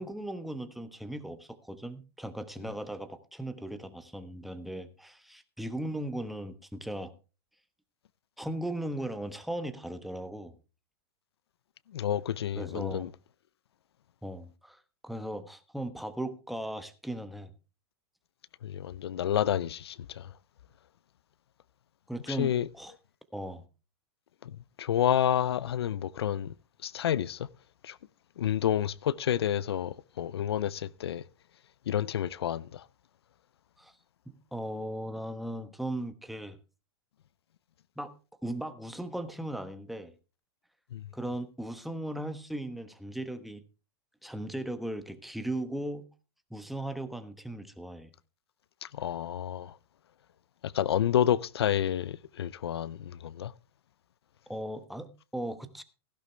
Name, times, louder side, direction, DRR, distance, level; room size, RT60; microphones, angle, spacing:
voice 1, 0.0-7.1 8.4-10.5 12.5-13.1 14.2-17.5 22.1-22.9 23.3-23.6 33.8-33.9 34.3-36.6 38.0-38.1 38.4-40.1 41.1-43.6 44.2-46.1 46.5-48.1 54.5-55.8, right 1 dB, ahead, 1.1 m, -37 dB
voice 2, 11.9-13.1 18.6-20.3 22.3-22.7 24.4-24.5 24.8-26.5 26.8-27.4 27.8-28.0 28.4-31.2 31.9-32.8 40.9-41.0 48.9-49.7 50.6-53.5, left 10 dB, 85° left, 0.5 m, -29 dB
15.5 x 11.5 x 3.3 m
hypercardioid pair, 125°, 13 cm